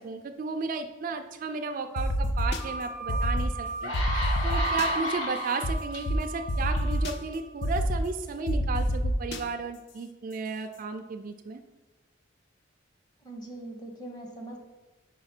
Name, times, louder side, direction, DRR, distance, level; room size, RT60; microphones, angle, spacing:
voice 1, 0.0-11.6, right 4 dB, 45° right, 5 dB, 0.3 m, -34 dB
sound 1, 2.0-2.6 3.1-3.5 3.9-4.9 5.6-5.7 6.1-6.2 6.5-7.1 7.6-8.0 8.5-9.4, equal, 60° left, 0.5 m, -28 dB
sound 2, 2.6-7.4, right 3 dB, 40° left, 1.6 m, -36 dB
sound 3, 3.1-3.2 3.6-6.0 6.7-6.9, left 1 dB, 85° left, 1.2 m, -33 dB
voice 2, 13.2-14.6, right 1 dB, 20° left, 1 dB, 1.0 m, -41 dB
4.8 x 4.7 x 4.3 m, 1.2 s
head